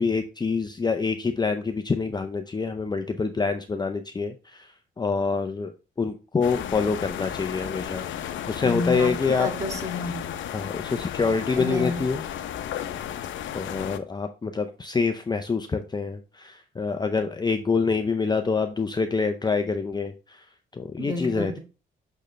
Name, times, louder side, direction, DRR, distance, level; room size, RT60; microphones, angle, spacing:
voice 1, 0.0-5.7 6.0-9.5 10.5-12.2 13.5-20.4 20.7-21.6, left 4 dB, 20° left, 0.6 m, -26 dB
sound 1, 6.4-14.0, left 10 dB, 75° left, 0.7 m, -34 dB
voice 2, 8.6-10.4 11.5-12.0 21.0-21.6, left 2 dB, 15° right, 2.0 m, -30 dB
6.5 x 6.4 x 3.2 m
cardioid pair, 90°, 20 cm